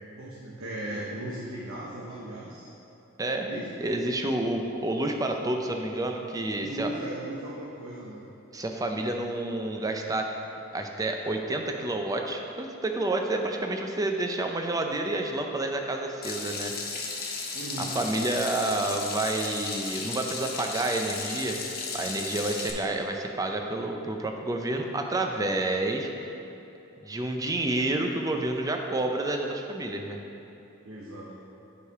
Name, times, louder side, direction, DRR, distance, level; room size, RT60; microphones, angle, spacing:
voice 1, 0.0-2.7 3.4-3.7 6.6-8.3 17.5-18.0 30.8-31.3, right 1 dB, 85° right, -5 dB, 0.9 m, -37 dB
voice 2, 3.8-6.9 8.5-10.3 10.7-16.7 17.8-21.6 21.9-26.1 27.0-30.2, right 2 dB, 15° right, 3 dB, 0.5 m, -29 dB
Water tap faucet / Sink (filling or washing), 16.2-22.7, left 4 dB, 45° left, 0.9 m, -35 dB
8.2 x 4.9 x 4.8 m, 2.9 s
head